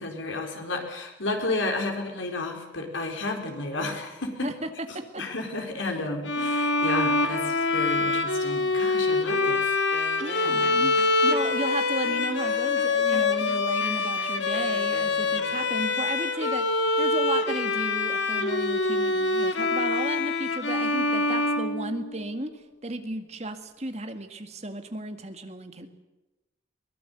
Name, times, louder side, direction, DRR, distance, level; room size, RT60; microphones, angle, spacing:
voice 1, 0.0-4.5 5.2-10.9, left 2 dB, 90° left, 4 dB, 4.4 m, -32 dB
Bowed string instrument, 6.2-22.3, left 3 dB, 70° left, 2.1 m, -25 dB
Wind instrument woodwind instrument, 9.9-15.7, left 3 dB, 55° left, 1.6 m, -41 dB
voice 2, 10.2-25.9, right 2 dB, 35° right, 7 dB, 1.9 m, -34 dB
22.0 x 20.5 x 8.1 m, 1.0 s
head